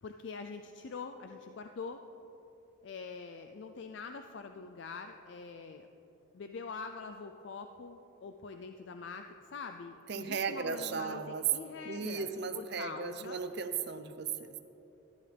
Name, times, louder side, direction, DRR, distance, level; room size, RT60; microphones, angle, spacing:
voice 1, 0.0-2.0 2.8-5.9 6.3-12.3 12.5-13.4, left 4 dB, 60° left, 6 dB, 0.4 m, -44 dB
voice 2, 10.1-11.4 11.8-14.6, right 5 dB, 55° right, 9 dB, 0.6 m, -36 dB
14.0 x 10.5 x 3.4 m, 3.0 s
head